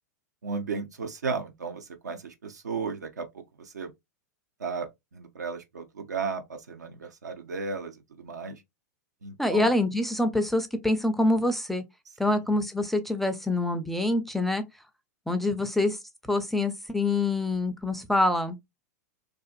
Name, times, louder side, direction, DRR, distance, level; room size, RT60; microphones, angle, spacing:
voice 1, 0.4-3.9 4.6-8.6 9.2-9.7 12.3-12.5, right 4 dB, 75° right, 0.6 m, -35 dB
voice 2, 9.4-11.8 12.2-14.6 15.3-16.0 16.3-18.6, left 2 dB, ahead, 0.4 m, -25 dB
2.5 x 2.4 x 2.4 m
figure-of-eight pair, 95°, 9 cm